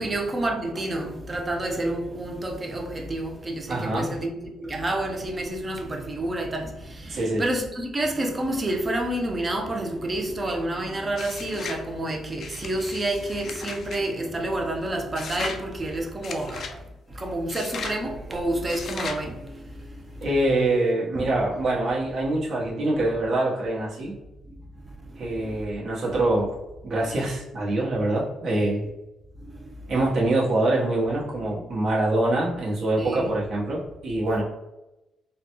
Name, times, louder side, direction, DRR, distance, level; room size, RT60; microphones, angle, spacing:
voice 1, 0.0-16.8 17.1-20.2 21.2-21.3 25.1-25.6 29.4-29.9 33.0-33.3, right 1 dB, 30° right, 0.6 m, -29 dB
voice 2, 3.7-4.1 7.1-7.4 20.2-24.1 25.2-26.5 26.8-28.8 29.9-34.4, right 2 dB, 60° right, 1.1 m, -24 dB
sound 1, 11.1-11.8 12.4-14.0 15.1-15.6 16.2-16.8 17.5-18.0 18.7-19.2, left 5 dB, 60° left, 0.4 m, -36 dB
3.8 x 2.2 x 3.0 m
cardioid pair, 90°, 0 cm